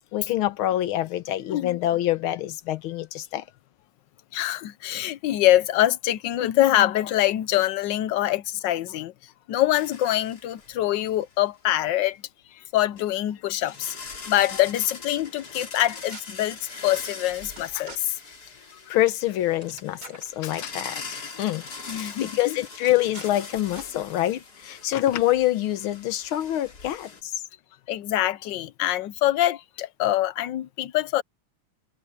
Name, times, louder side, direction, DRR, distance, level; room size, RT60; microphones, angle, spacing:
voice 1, 0.1-3.4 18.9-27.4, left 14 dB, 85° left, 1.7 m, -26 dB
voice 2, 4.3-9.1 9.5-12.2 12.5-13.9 14.2-18.2 20.4-20.7 21.9-22.6 27.9-31.2, left 14 dB, 70° left, 1.3 m, -24 dB
sound 1, 9.7-10.7 11.1-11.2 13.0-13.1 13.6-27.2, left 4 dB, 50° left, 3.2 m, -41 dB
sound 2, 14.0-14.5 14.9-15.0 15.8-16.2 17.6-18.0 19.1-19.2 19.5-20.3 21.3-21.4 21.7-22.0 22.8-23.3 23.7-23.9, right 4 dB, 75° right, 5.0 m, -45 dB
omnidirectional pair, 2.3 m